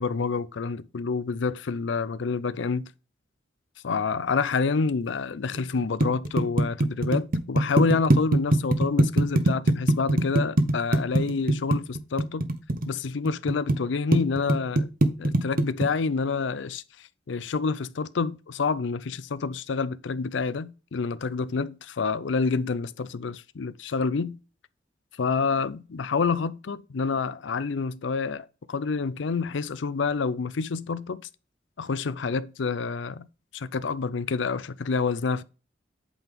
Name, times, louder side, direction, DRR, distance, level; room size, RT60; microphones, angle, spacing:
voice 1, 0.0-2.9 3.8-12.5 12.9-14.9 15.2-16.8 17.3-24.4 25.2-31.2 31.8-33.3 33.5-35.4, left 4 dB, 70° left, 0.5 m, -28 dB
sound 1, 5.5-13.7 14.1-15.9, right 1 dB, 50° right, 0.9 m, -21 dB
8.4 x 3.7 x 5.1 m
head